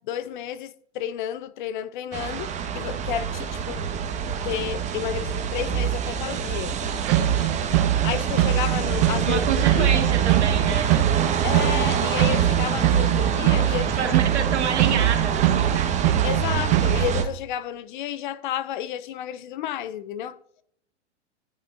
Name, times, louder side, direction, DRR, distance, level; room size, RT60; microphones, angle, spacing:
voice 1, 0.1-3.8 4.4-6.8 8.0-10.0 11.4-14.1 16.2-20.4, left 10 dB, 45° left, 0.5 m, -31 dB
sound 1, 2.1-17.2, right 8 dB, 20° right, 1.0 m, -26 dB
sound 2, 7.0-17.1, right 13 dB, 40° right, 0.7 m, -23 dB
voice 2, 9.3-10.9 14.0-15.9, right 7 dB, 75° right, 2.0 m, -28 dB
17.5 x 5.9 x 2.4 m
hypercardioid pair, 110°, 35 cm